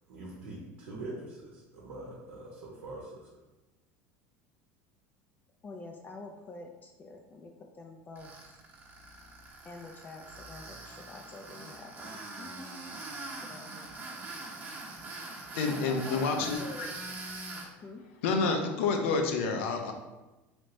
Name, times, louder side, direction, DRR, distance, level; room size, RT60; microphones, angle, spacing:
voice 1, 0.1-3.3, right 2 dB, 80° right, -4 dB, 0.7 m, -43 dB
voice 2, 5.6-8.6 9.6-13.1 13.5-13.9 15.7-16.9 17.8-18.0, left 3 dB, 30° left, 2 dB, 0.3 m, -47 dB
Tools, 8.2-17.7, right 2 dB, 30° right, 0.9 m, -43 dB
voice 3, 15.5-16.9 18.2-19.9, left 4 dB, 80° left, 4 dB, 0.5 m, -29 dB
3.3 x 3.0 x 2.5 m, 1.1 s
supercardioid pair, 95°, 7 cm